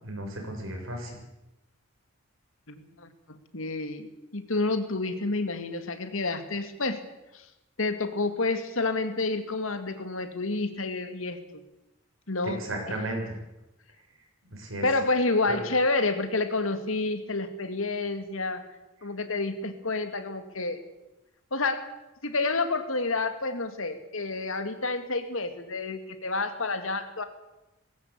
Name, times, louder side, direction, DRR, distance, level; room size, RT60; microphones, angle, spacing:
voice 1, 0.0-1.1 12.6-13.2 14.4-14.8 15.5-15.6, right 1 dB, 75° right, 1 dB, 6.8 m, -34 dB
voice 2, 2.7-7.0 7.3-7.4 7.8-11.6 12.3-12.6 14.8-18.6 19.0-20.8 21.5-21.9 22.2-27.2, left 3 dB, 75° left, 9 dB, 2.2 m, -29 dB
19.5 x 16.5 x 8.5 m, 0.96 s
head